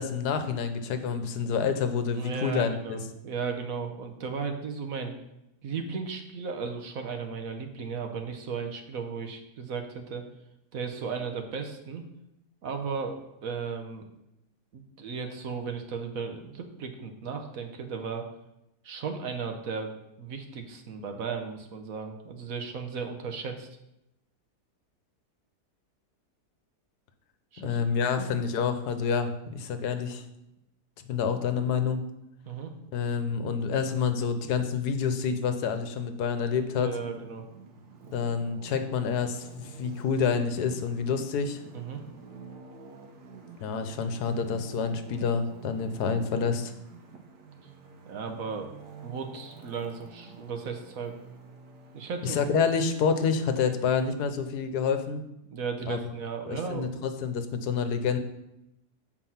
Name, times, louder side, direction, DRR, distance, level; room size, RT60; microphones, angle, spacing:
voice 1, 0.0-3.0 27.6-30.2 31.1-32.0 32.9-36.9 38.1-41.6 43.6-46.7 52.2-55.2 55.9-56.0 56.4-58.2, left 6 dB, 80° left, 9 dB, 1.3 m, -28 dB
voice 2, 2.1-5.1 5.6-10.3 10.7-12.0 12.6-14.1 14.7-18.3 18.8-19.9 20.2-23.7 27.5-27.8 28.2-28.3 32.4-32.7 36.7-37.4 41.7-42.0 48.1-48.7 49.0-51.1 51.9-52.4 55.4-56.9, right 5 dB, 60° right, 5 dB, 1.2 m, -35 dB
Traffic noise roadway noise, 35.7-54.2, right 4 dB, 85° right, 1.6 m, -49 dB
7.4 x 4.6 x 5.6 m, 0.86 s
omnidirectional pair, 1.7 m